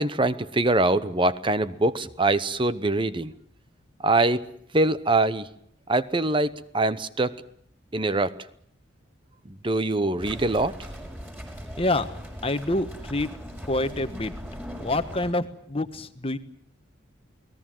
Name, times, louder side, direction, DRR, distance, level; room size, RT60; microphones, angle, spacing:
voice 1, 0.0-3.3 4.0-4.4 4.7-5.5 5.9-7.4 7.9-8.3 9.6-10.7, right 2 dB, 25° right, 14 dB, 0.9 m, -23 dB
sound 1, 10.2-15.3, equal, 10° right, 5.6 m, -39 dB
voice 2, 11.8-12.1 12.4-13.3 13.7-14.3 14.8-16.4, left 2 dB, 30° left, 10 dB, 1.3 m, -27 dB
29.0 x 19.0 x 7.7 m, 0.68 s
head